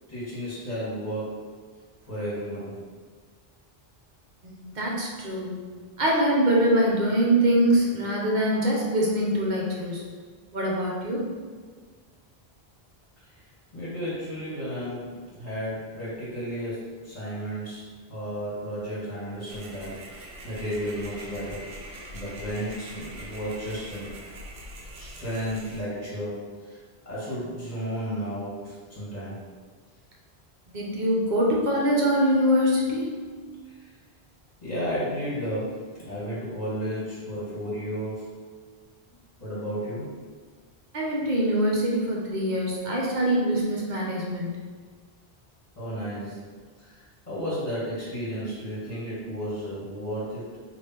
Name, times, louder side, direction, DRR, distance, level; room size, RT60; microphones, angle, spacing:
voice 1, 0.1-1.4 2.1-2.7 13.3-13.4 13.7-17.8 18.1-21.6 22.1-24.1 24.9-26.8 27.0-29.4 33.6-33.9 34.6-38.3 39.4-40.1 45.7-46.4 46.8-50.6, equal, 40° left, -11 dB, 1.6 m, -33 dB
voice 2, 4.4-5.6 6.0-10.1 10.5-11.2 30.7-33.1 40.9-44.5, equal, 50° right, -3 dB, 0.9 m, -24 dB
sound 1, 19.5-25.8, right 1 dB, 85° right, 0.9 m, -43 dB
3.3 x 2.6 x 4.2 m, 1.5 s
omnidirectional pair, 1.0 m